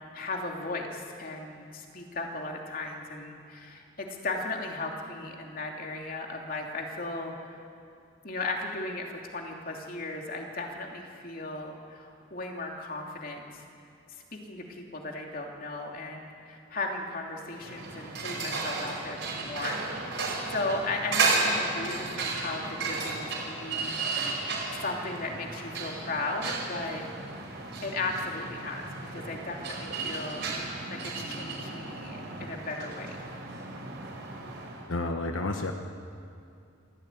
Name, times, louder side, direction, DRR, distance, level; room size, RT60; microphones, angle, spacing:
voice 1, 0.1-7.6 8.2-13.6 14.1-19.8 20.2-24.2 24.8-27.0 27.8-33.3, left 2 dB, 45° left, 1 dB, 3.0 m, -36 dB
sound 1, 17.5-34.9, right 3 dB, 60° right, 5.3 m, -34 dB
voice 2, 34.9-35.7, left 2 dB, 85° left, 4 dB, 1.2 m, -30 dB
26.5 x 15.5 x 9.3 m, 2.4 s
head